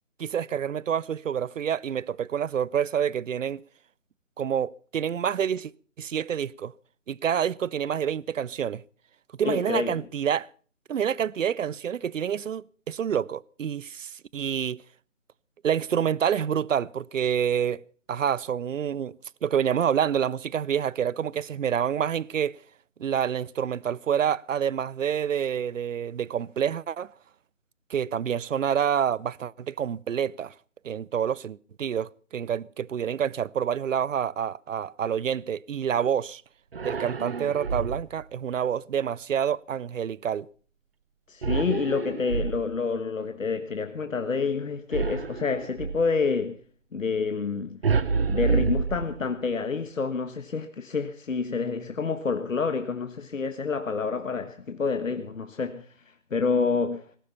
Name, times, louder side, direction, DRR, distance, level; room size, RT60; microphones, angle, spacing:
voice 1, 0.2-3.6 4.4-5.7 6.0-6.7 7.1-8.8 9.4-10.5 10.9-14.8 15.6-17.8 18.1-19.2 19.4-22.6 23.0-27.1 27.9-30.5 30.8-36.4 36.8-40.5, right 8 dB, 75° right, 0.6 m, -27 dB
voice 2, 9.4-10.0 41.3-46.6 46.9-47.8 48.3-55.9 56.3-57.1, left 5 dB, 85° left, 1.5 m, -28 dB
sound 1, 36.7-38.2 41.4-43.0 44.9-46.1 47.8-49.5, right 5 dB, 50° right, 0.9 m, -28 dB
18.5 x 11.5 x 5.6 m
hypercardioid pair, 170°, 38 cm